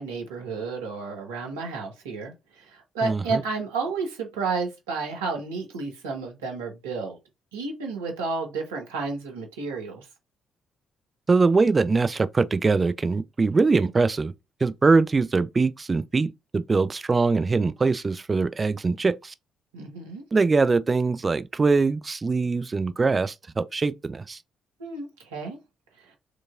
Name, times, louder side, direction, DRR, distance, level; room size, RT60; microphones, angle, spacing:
voice 1, 0.0-7.2 7.5-10.1 19.7-20.2 24.8-25.6 26.0-26.1, right 4 dB, 80° right, 1.0 m, -31 dB
voice 2, 3.0-3.4 11.3-14.3 14.6-19.3 20.3-24.4, right 4 dB, 35° right, 0.4 m, -22 dB
4.8 x 2.9 x 2.4 m
figure-of-eight pair, 45°, 0 cm